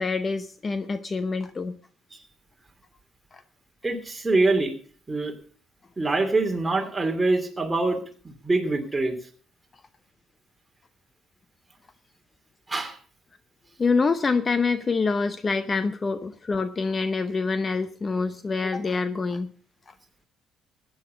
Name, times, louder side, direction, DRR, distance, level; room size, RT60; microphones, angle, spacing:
voice 1, 0.0-1.8 3.3-3.4 13.8-19.5 19.9-20.0, left 4 dB, 30° left, 12 dB, 0.7 m, -26 dB
voice 2, 3.8-4.7 5.1-5.3 6.0-8.0 8.2-9.2 12.7-13.0, right 2 dB, 15° right, 4 dB, 2.8 m, -24 dB
14.5 x 9.6 x 5.0 m, 0.43 s
cardioid pair, 95°, 0 cm